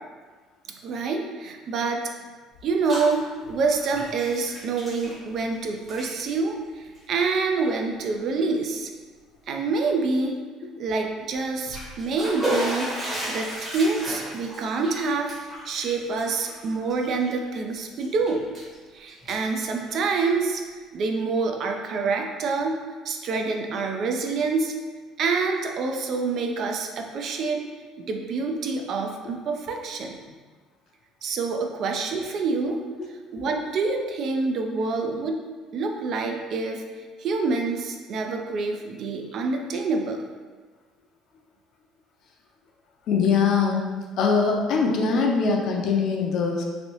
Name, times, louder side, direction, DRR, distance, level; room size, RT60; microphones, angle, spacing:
voice 1, 0.8-2.0 2.6-8.9 9.5-10.4 10.8-12.9 13.3-18.4 18.9-22.8 23.0-24.7 25.2-27.6 28.0-30.2 31.2-32.8 33.1-35.4 35.7-40.2, right 4 dB, 50° right, 3 dB, 0.4 m, -27 dB
Bathtub (filling or washing), 2.5-3.1 3.4-5.5 5.8-6.1 6.8-7.0 7.6-7.7 8.2-8.3 11.4-17.6 18.0-18.8 19.1-20.4, right 1 dB, 25° right, 1.1 m, -33 dB
voice 2, 43.1-43.9 44.2-46.6, left 5 dB, 55° left, 0 dB, 0.5 m, -22 dB
3.1 x 2.6 x 2.9 m, 1.4 s
cardioid pair, 135°, 0 cm